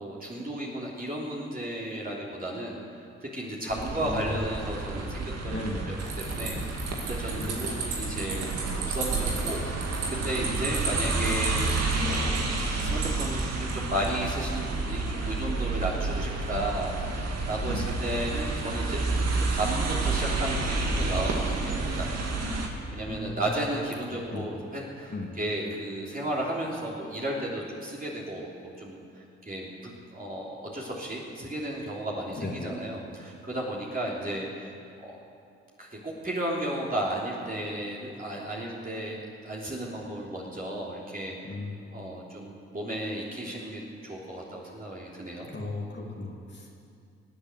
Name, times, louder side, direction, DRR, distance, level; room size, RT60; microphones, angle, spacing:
voice 1, 0.0-6.8 7.1-11.7 12.0-12.5 12.8-19.0 19.5-22.2 22.9-35.2 35.8-41.5 41.9-45.5, right 1 dB, 25° right, -4 dB, 3.4 m, -34 dB
sound 1, 3.7-22.7, right 3 dB, 55° right, 2.2 m, -30 dB
voice 2, 4.0-4.4 5.5-5.9 7.4-7.5 10.4-10.6 17.6-17.9 23.1-23.5 24.3-24.5 25.1-25.3 32.3-32.8 41.4-41.8 45.5-46.8, left 2 dB, 35° left, -1 dB, 2.6 m, -36 dB
sound 2, 6.0-14.1, right 4 dB, 70° right, 2.6 m, -36 dB
19.5 x 8.5 x 8.0 m, 2.5 s
hypercardioid pair, 40°, 31 cm